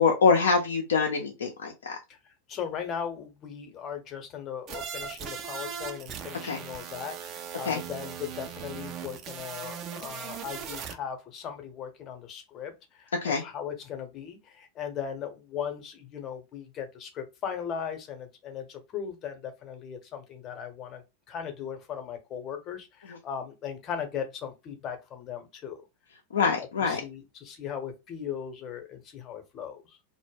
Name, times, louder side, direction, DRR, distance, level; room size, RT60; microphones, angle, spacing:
voice 1, 0.0-2.0 6.4-6.6 7.6-7.8 13.2-13.4 23.1-23.2 26.3-27.0, left 5 dB, 75° left, 0.4 m, -24 dB
voice 2, 2.5-25.8 26.6-30.0, left 8 dB, 35° left, 0.7 m, -38 dB
sound 1, 4.7-10.9, right 7 dB, 40° right, 0.4 m, -39 dB
2.1 x 2.0 x 3.3 m
figure-of-eight pair, 90°, 0 cm